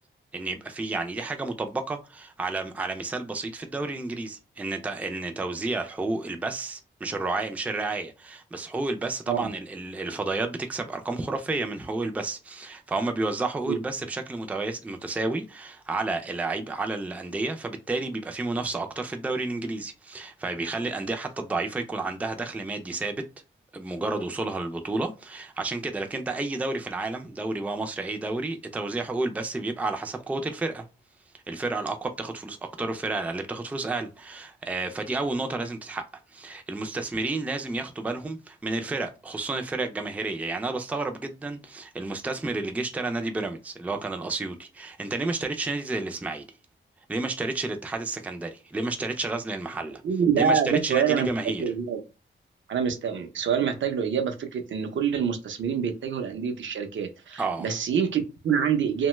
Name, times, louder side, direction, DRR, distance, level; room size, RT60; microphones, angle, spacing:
voice 1, 0.3-23.3 23.7-30.8 31.5-36.0 36.3-46.4 47.1-50.0 50.4-51.6 57.4-57.7, right 3 dB, 5° right, 0.4 m, -31 dB
voice 2, 50.0-51.3 51.6-52.0 52.7-59.1, right 7 dB, 70° right, 0.6 m, -26 dB
2.8 x 2.2 x 3.0 m
wide cardioid pair, 125°, 20 cm